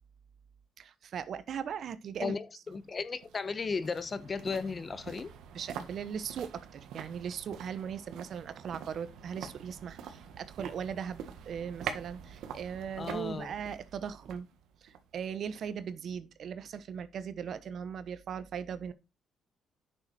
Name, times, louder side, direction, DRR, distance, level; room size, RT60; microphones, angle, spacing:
voice 1, 0.8-2.3 5.5-14.5 14.8-18.9, right 7 dB, 60° right, 1.0 m, -39 dB
voice 2, 2.2-5.3 13.0-13.5, left 4 dB, 35° left, 1.0 m, -35 dB
sound 1, 2.7-15.8 16.1-16.2, right 8 dB, 85° right, 1.6 m, -46 dB
9.5 x 6.7 x 4.3 m
cardioid pair, 90°, 0 cm